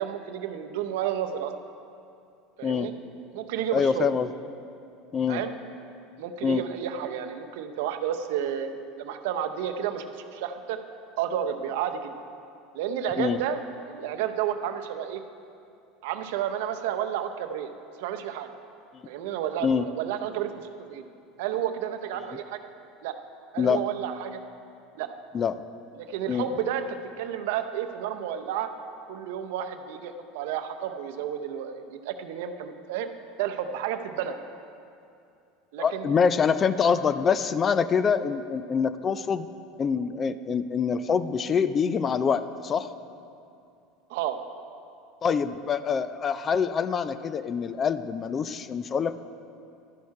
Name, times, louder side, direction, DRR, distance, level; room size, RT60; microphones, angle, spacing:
voice 1, 0.0-1.5 2.6-2.9 3.3-4.1 5.3-5.5 6.2-10.8 11.2-12.1 12.7-13.6 13.9-15.2 16.0-17.7 18.0-18.5 19.1-21.1 21.4-22.7 23.0-23.1 23.5-24.4 25.0-25.1 26.0-28.7 29.1-33.1 33.4-34.3 35.7-36.1 44.1-44.4, right 9 dB, 75° right, 7 dB, 0.6 m, -31 dB
voice 2, 3.7-4.3 5.1-5.4 6.4-6.6 13.2-13.4 19.6-19.8 23.6-23.8 25.3-25.6 26.3-26.5 35.8-39.5 39.8-42.9 45.2-49.2, left 6 dB, 30° left, 13 dB, 0.4 m, -25 dB
11.5 x 6.3 x 4.7 m, 2.5 s
supercardioid pair, 110°, 0 cm